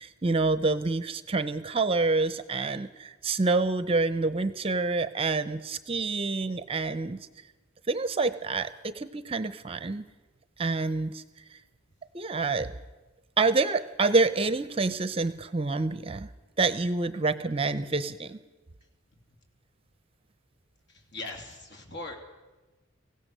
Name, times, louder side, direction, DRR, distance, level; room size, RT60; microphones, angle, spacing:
voice 1, 0.0-7.2 7.9-10.1 10.6-11.2 12.1-12.7 13.4-16.3 16.6-18.4, right 3 dB, 25° right, 13 dB, 0.7 m, -27 dB
voice 2, 21.1-22.2, left 2 dB, 55° left, 3 dB, 3.0 m, -39 dB
23.0 x 16.5 x 6.7 m, 1.2 s
head